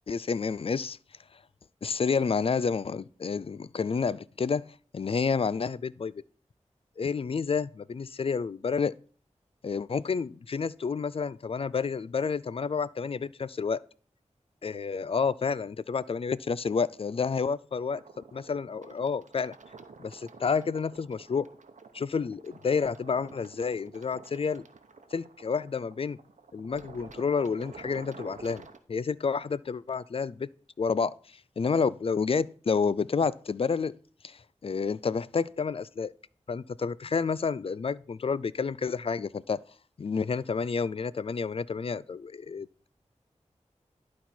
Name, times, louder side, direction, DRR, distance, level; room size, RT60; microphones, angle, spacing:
voice 1, 0.1-1.0 1.8-6.1 7.0-8.9 9.6-13.8 14.6-19.6 20.0-21.5 21.9-24.6 25.1-26.2 26.5-30.5 30.8-31.1 31.6-33.9 34.2-36.1 36.5-39.6 40.0-42.9, left 5 dB, 50° left, 0.3 m, -30 dB
sound 1, 17.9-28.8, right 4 dB, 80° right, 0.8 m, -50 dB
11.5 x 4.2 x 4.3 m
cardioid pair, 45°, 12 cm